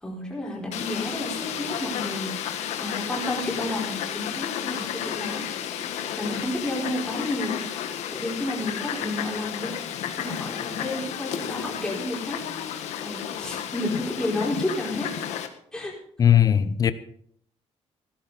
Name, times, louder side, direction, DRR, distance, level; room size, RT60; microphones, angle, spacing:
voice 1, 0.0-2.3 2.8-5.5 5.8-5.9 6.2-7.6 8.1-9.7 10.2-12.4 13.0-15.2 15.7-15.9, left 1 dB, 5° left, 4.5 m, -31 dB
Fowl, 0.7-15.5, left 9 dB, 85° left, 1.4 m, -32 dB
voice 2, 16.2-16.9, left 9 dB, 30° left, 0.8 m, -18 dB
16.0 x 13.0 x 4.1 m
cardioid pair, 160°, 11 cm